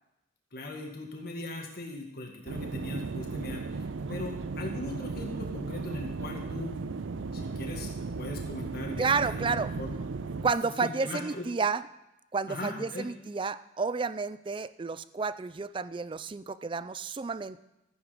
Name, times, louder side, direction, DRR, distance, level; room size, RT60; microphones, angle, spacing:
voice 1, 0.5-3.8 4.1-6.8 7.3-7.9 8.2-9.9 10.6-11.5 12.5-13.1, left 2 dB, 50° left, 0 dB, 1.9 m, -39 dB
sound 1, 2.5-10.5, right 4 dB, 75° right, 0.5 m, -36 dB
voice 2, 9.0-9.7 10.4-11.9 12.3-17.6, right 4 dB, 25° right, 15 dB, 0.3 m, -31 dB
13.5 x 10.0 x 5.1 m, 0.92 s
head